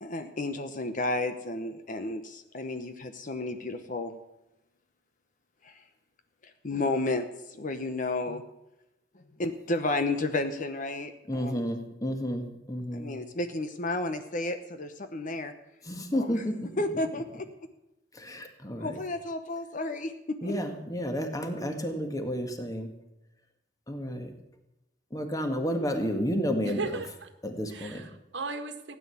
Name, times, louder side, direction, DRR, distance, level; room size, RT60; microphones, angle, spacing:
voice 1, 0.0-4.1 5.6-5.7 6.6-8.4 9.4-11.5 12.9-15.5 16.1-16.4 16.8-17.5 18.8-20.5, left 2 dB, 45° left, 8 dB, 0.9 m, -32 dB
voice 2, 11.3-13.1 15.8-16.7 18.1-19.0 20.4-22.9 23.9-24.3 25.1-26.9 27.4-28.0, equal, 20° left, 5 dB, 1.8 m, -31 dB
voice 3, 26.6-27.3 27.7-29.0, right 3 dB, 70° right, 7 dB, 1.5 m, -36 dB
16.0 x 9.7 x 7.1 m, 0.93 s
head